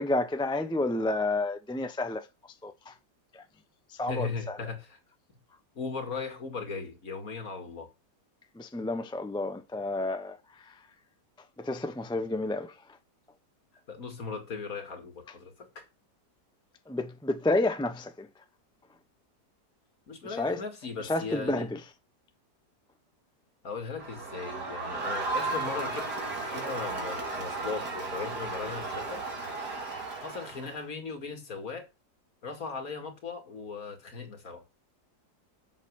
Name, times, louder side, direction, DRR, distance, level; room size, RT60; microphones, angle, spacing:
voice 1, 0.0-2.3 2.6-2.9 3.3-3.4 3.9-4.6 8.5-10.8 11.6-12.8 16.9-18.3 20.2-20.6 21.0-21.8, left 2 dB, 5° left, 0.5 m, -30 dB
voice 2, 4.1-5.0 5.3-5.4 5.7-7.9 13.9-15.9 20.1-21.7 23.6-29.3 30.2-31.9 32.4-34.6, left 4 dB, 55° left, 2.5 m, -38 dB
Crowd, 24.0-30.8, right 3 dB, 75° right, 3.3 m, -34 dB
8.2 x 6.8 x 6.3 m
omnidirectional pair, 1.8 m